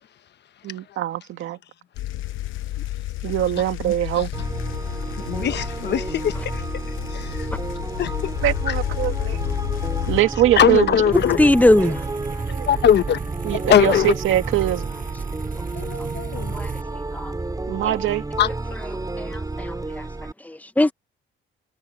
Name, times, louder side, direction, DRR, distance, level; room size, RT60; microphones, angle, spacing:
voice 1, 0.6-1.6 3.2-4.3 8.4-9.4 10.1-10.9 11.8-11.9 12.5-12.7 13.4-14.9 17.7-18.2, right 14 dB, 85° right, 2.1 m, -22 dB
sound 1, 2.0-10.2, left 15 dB, 90° left, 0.9 m, -30 dB
sound 2, 4.3-20.3, right 2 dB, 20° right, 6.9 m, -31 dB
voice 2, 5.2-6.6 7.1-7.5 8.0-8.3 8.7-8.8 10.5-11.4 12.7-13.2 13.5-14.1 15.7-16.6 18.4-18.5, left 9 dB, 60° left, 1.1 m, -21 dB
sound 3, 11.1-16.9, right 6 dB, 45° right, 6.8 m, -33 dB
voice 3, 11.4-12.0 16.5-16.7 17.1-17.3 19.2-20.0 20.4-20.9, left 1 dB, 10° left, 1.2 m, -19 dB
cardioid pair, 90°, 20 cm